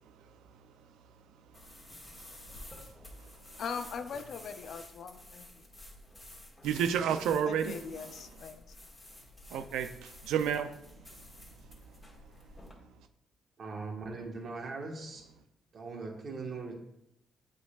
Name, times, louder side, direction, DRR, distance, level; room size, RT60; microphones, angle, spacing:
sound 1, 1.5-12.7, left 1 dB, 15° left, 1.7 m, -51 dB
voice 1, 3.6-5.6 7.4-8.6, left 6 dB, 65° left, 0.5 m, -41 dB
voice 2, 6.6-7.8 9.5-10.7, right 8 dB, 85° right, 0.4 m, -30 dB
voice 3, 13.6-15.2 15.7-16.7, right 3 dB, 50° right, 1.4 m, -40 dB
8.2 x 5.6 x 2.4 m
cardioid pair, 90°, 0 cm